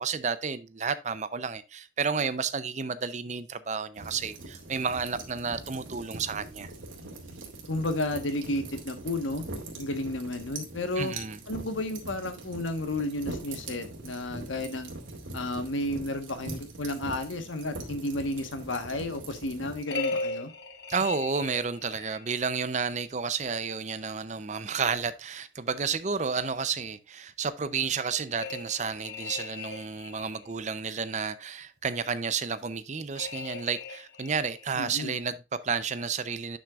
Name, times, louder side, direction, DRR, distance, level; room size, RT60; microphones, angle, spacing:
voice 1, 0.0-6.7 11.0-11.4 20.9-36.6, right 5 dB, 35° right, 0.6 m, -31 dB
sound 1, 4.0-19.8, right 2 dB, 90° right, 2.3 m, -42 dB
voice 2, 7.7-9.4 9.8-11.1 11.5-14.9 15.3-20.5 34.8-35.2, left 1 dB, 85° left, 1.3 m, -32 dB
sound 2, 19.9-22.3 28.4-30.5 33.1-34.7, left 3 dB, 60° left, 1.2 m, -37 dB
10.0 x 6.1 x 2.4 m
head